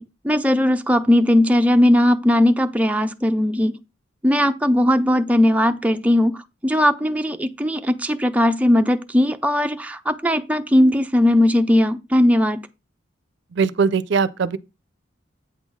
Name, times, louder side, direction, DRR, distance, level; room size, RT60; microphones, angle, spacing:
voice 1, 0.0-3.8 4.2-12.6, left 1 dB, 10° right, 0.4 m, -18 dB
voice 2, 13.5-14.6, right 5 dB, 65° right, 0.5 m, -20 dB
8.5 x 3.7 x 6.1 m
head